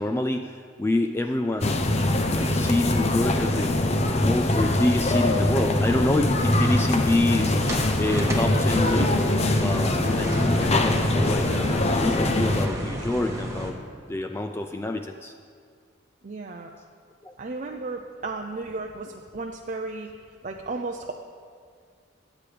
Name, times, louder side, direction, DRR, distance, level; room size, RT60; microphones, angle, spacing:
voice 1, 0.0-1.9 2.3-3.9 4.1-9.2 9.6-13.8 14.1-15.3 17.2-17.3, left 1 dB, 15° left, 5 dB, 0.3 m, -27 dB
sound 1, 1.6-12.7, left 1 dB, 35° left, 0.7 m, -23 dB
sound 2, 6.0-13.7, right 1 dB, 15° right, 1.4 m, -34 dB
voice 2, 16.2-16.7 17.4-20.1 20.4-21.1, right 3 dB, 40° right, 2 dB, 0.5 m, -34 dB
21.5 x 8.5 x 3.4 m, 2.1 s
head